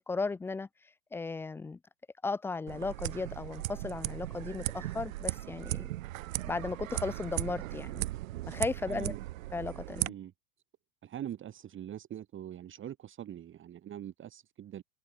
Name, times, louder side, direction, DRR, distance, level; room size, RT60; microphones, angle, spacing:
voice 1, 0.1-0.7 1.1-1.8 2.2-5.9 6.5-8.1 8.5-9.2 9.5-10.1, left 3 dB, 5° left, 0.4 m, -35 dB
sound 1, 2.7-10.1, right 16 dB, 65° right, 0.8 m, -37 dB
voice 2, 8.9-9.2 10.1-10.3 11.0-14.8, right 11 dB, 30° right, 2.2 m, -43 dB
hypercardioid pair, 95°, 43 cm